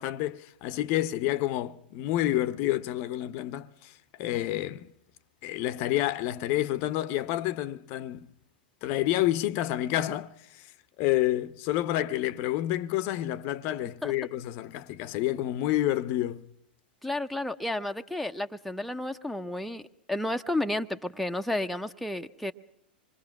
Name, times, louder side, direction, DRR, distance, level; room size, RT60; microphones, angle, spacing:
voice 1, 0.0-4.9 5.4-8.3 8.8-10.7 11.0-16.5, left 14 dB, 45° left, 0.8 m, -29 dB
voice 2, 17.0-19.8 20.1-22.5, left 1 dB, ahead, 0.8 m, -31 dB
26.0 x 22.0 x 5.9 m
figure-of-eight pair, 100°, 5 cm